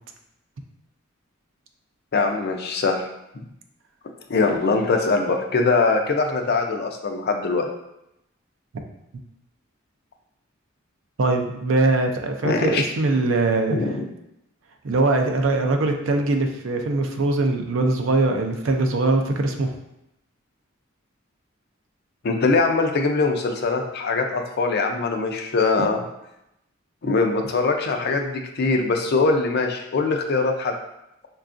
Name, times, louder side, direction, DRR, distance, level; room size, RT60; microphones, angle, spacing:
voice 1, 2.1-3.1 4.3-7.7 12.4-12.8 13.7-14.0 22.2-26.0 27.0-30.8, left 3 dB, 55° left, 3 dB, 0.5 m, -22 dB
voice 2, 11.2-13.8 14.8-19.7 25.8-25.9, right 2 dB, 70° right, 4 dB, 0.5 m, -22 dB
5.5 x 2.3 x 2.5 m, 0.84 s
head